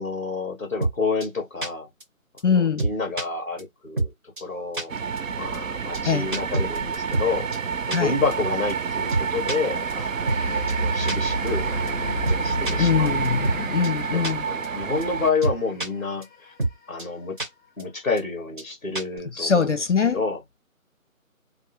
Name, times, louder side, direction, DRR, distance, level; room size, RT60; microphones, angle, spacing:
voice 1, 0.0-1.9 2.4-4.1 4.4-4.9 5.4-7.5 7.9-10.4 10.8-11.7 12.3-13.2 13.4-13.6 14.1-16.5 16.9-17.4 17.8-19.7 20.1-20.4, left 4 dB, 10° left, 1.1 m, -29 dB
sound 1, 0.8-0.9 1.2-1.3 1.6-1.7 2.0-2.1 2.4-2.5 2.8-3.2 3.6-3.7 4.0-4.1 4.4-4.5 4.7-4.8 5.2-5.3 5.5-5.6 5.9-6.0 6.3-7.3 7.5-7.6 7.9-8.0 8.3-8.4 8.7-8.8 9.1-9.6 9.9-10.0 10.3-10.4 10.7-10.8 11.1-11.2 11.5-11.6 11.9-12.0 12.3-12.4 12.7-13.6 13.8-13.9 14.2-14.3 14.6-14.7 15.0-15.1 15.4-15.9 16.2-16.3 16.6-16.7 17.0-17.1 17.4-17.5 17.8-17.9 18.2-18.3 18.6-18.7 19.0-19.2, right 2 dB, 35° right, 1.2 m, -26 dB
voice 2, 2.4-2.8 6.1-6.3 7.9-8.1 12.8-14.4 19.3-20.2, left 6 dB, 55° left, 0.6 m, -22 dB
sound 2, 4.9-15.3, right 6 dB, 65° right, 0.5 m, -29 dB
sound 3, 10.3-15.2, equal, 15° right, 1.0 m, -30 dB
3.4 x 2.0 x 2.8 m
figure-of-eight pair, 165°, 42 cm